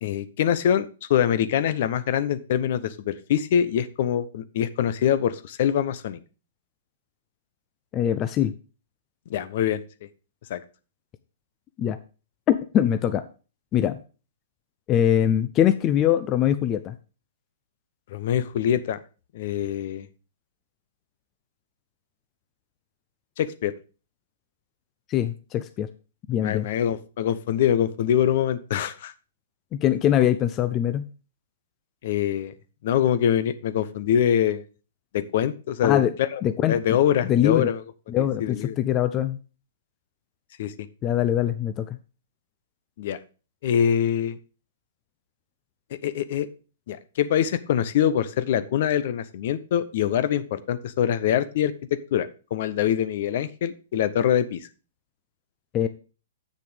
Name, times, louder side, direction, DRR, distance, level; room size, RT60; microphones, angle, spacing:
voice 1, 0.0-6.2 9.3-9.8 10.5-10.6 18.1-19.0 19.3-20.1 23.4-23.7 26.4-29.1 32.0-32.5 32.8-34.6 35.1-36.4 36.7-37.8 38.4-38.8 40.6-40.7 43.0-43.2 43.6-44.4 46.0-46.5 46.9-54.7, left 9 dB, 55° left, 14 dB, 0.8 m, -24 dB
voice 2, 7.9-8.5 11.8-12.0 12.5-13.2 13.7-14.0 14.9-16.9 25.1-25.9 26.3-26.7 29.7-31.1 35.8-36.1 36.4-36.8 37.2-37.7 38.1-39.4 41.0-42.0 55.7-55.9, left 10 dB, 30° left, 11 dB, 0.6 m, -22 dB
7.6 x 6.5 x 5.0 m, 0.35 s
hypercardioid pair, 125°, 0 cm